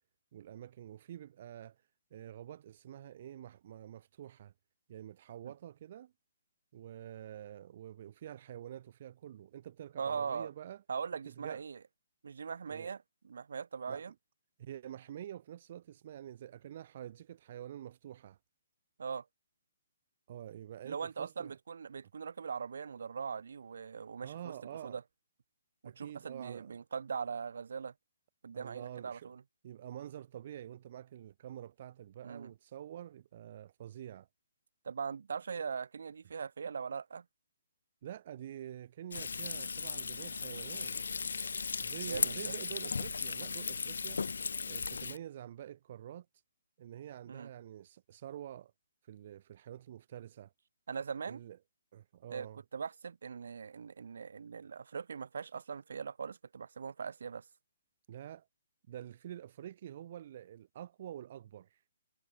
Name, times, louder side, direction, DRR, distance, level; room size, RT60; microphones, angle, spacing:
voice 1, 0.3-1.8 2.1-4.5 4.9-6.1 6.7-10.8 11.3-11.6 12.7-12.9 13.9-14.0 14.6-18.4 20.3-21.6 24.2-25.0 25.8-26.7 28.5-29.3 29.6-34.3 38.0-41.2 41.8-44.2 44.6-46.3 46.8-48.7 49.0-50.5 51.3-51.6 51.9-52.6 58.1-58.5 58.9-61.8, right 11 dB, 40° right, 0.5 m, -47 dB
voice 2, 10.0-10.5 10.9-11.8 12.2-14.1 19.0-19.3 20.8-24.5 24.8-25.0 25.8-27.9 28.4-29.4 32.2-32.5 34.8-37.2 42.1-42.5 47.3-47.5 50.9-51.4 52.3-52.5 52.7-57.4, right 6 dB, 70° right, 0.9 m, -40 dB
Frying (food), 39.1-45.2, left 5 dB, 90° left, 0.5 m, -36 dB
hypercardioid pair, 170°, 0 cm